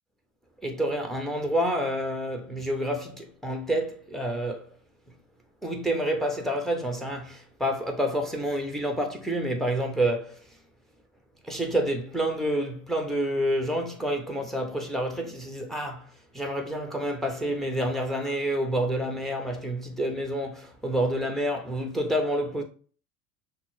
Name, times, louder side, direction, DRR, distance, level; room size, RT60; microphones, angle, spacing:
voice 1, 0.6-4.7 5.6-10.4 11.4-22.6, right 1 dB, ahead, 1.1 m, -28 dB
5.9 x 2.2 x 4.1 m
hypercardioid pair, 75°, 40 cm